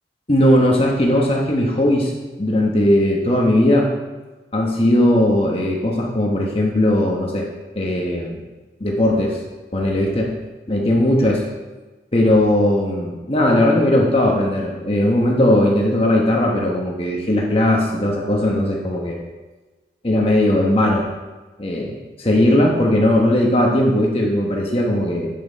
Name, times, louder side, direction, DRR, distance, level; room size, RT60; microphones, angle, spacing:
voice 1, 0.3-2.1 2.4-3.9 4.5-7.5 7.8-8.4 8.8-9.4 9.7-10.3 10.7-11.4 12.1-19.2 20.0-21.0 21.6-25.3, left 1 dB, 30° left, -1 dB, 1.2 m, -18 dB
9.0 x 8.7 x 4.1 m, 1.2 s
head